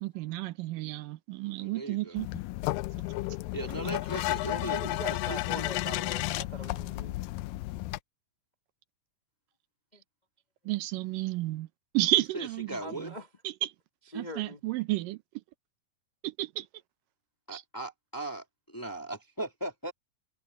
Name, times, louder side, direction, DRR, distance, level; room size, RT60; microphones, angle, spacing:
voice 1, 0.0-2.3 10.7-11.7 11.9-13.1 13.4-13.7 14.1-15.2 16.2-16.7 17.5-17.6, right 16 dB, 80° right, 2.5 m, -31 dB
voice 2, 1.6-2.2 3.5-5.7 12.3-13.1 17.5-19.9, right 2 dB, 10° left, 1.7 m, -38 dB
sound 1, 2.2-8.0, left 18 dB, 90° left, 2.3 m, -32 dB
voice 3, 4.4-7.2 9.9-10.0 12.8-13.3 14.1-14.6, equal, 25° left, 0.8 m, -42 dB
omnidirectional pair, 3.9 m